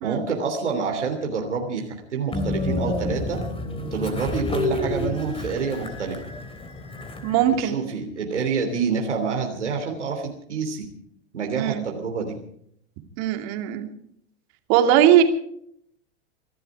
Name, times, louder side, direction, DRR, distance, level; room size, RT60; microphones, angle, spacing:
voice 1, 0.0-3.4 3.9-6.2 7.5-10.9 11.3-12.4, right 5 dB, 85° right, 2 dB, 3.2 m, -27 dB
Train, 2.3-7.6, left 2 dB, 15° left, 3.3 m, -29 dB
voice 2, 7.2-7.8 11.6-11.8 13.2-13.9 14.7-15.2, right 11 dB, 55° right, 6 dB, 2.8 m, -19 dB
24.0 x 12.5 x 4.9 m, 0.68 s
hypercardioid pair, 95°, 34 cm